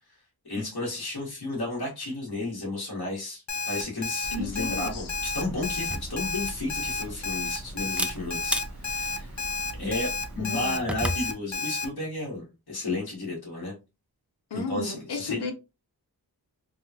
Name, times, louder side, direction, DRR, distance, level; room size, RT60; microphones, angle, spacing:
voice 1, 0.4-9.4 9.8-13.7 14.5-15.4, left 2 dB, 65° left, 1.6 m, -33 dB
Alarm, 3.5-11.8, left 4 dB, 45° left, 0.7 m, -31 dB
sound 1, 4.2-10.4, right 1 dB, 45° right, 0.8 m, -42 dB
voice 2, 4.3-5.1 10.4-10.8 14.5-15.5, left 3 dB, 80° left, 0.8 m, -34 dB
Camera, 5.8-11.3, equal, 5° right, 0.3 m, -36 dB
3.5 x 2.3 x 2.8 m
wide cardioid pair, 70°, 40 cm